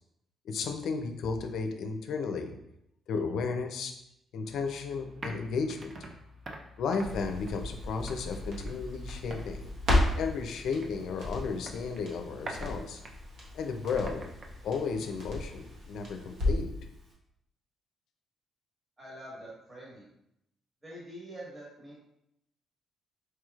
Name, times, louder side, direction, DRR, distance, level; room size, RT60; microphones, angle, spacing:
voice 1, 0.4-2.5 3.1-3.9 4.3-6.0 6.8-9.6 10.2-13.0 13.5-14.3 14.6-16.8, left 5 dB, 75° left, 6 dB, 0.5 m, -33 dB
sound 1, 4.4-15.9, right 1 dB, 45° right, 0.6 m, -47 dB
Crackle, 7.0-16.8 17.1-17.2, left 1 dB, 75° right, 1.1 m, -34 dB
voice 2, 19.0-20.1 20.8-21.9, right 1 dB, 20° right, -6 dB, 1.4 m, -45 dB
4.5 x 3.0 x 2.4 m, 0.80 s
cardioid pair, 90°, 0 cm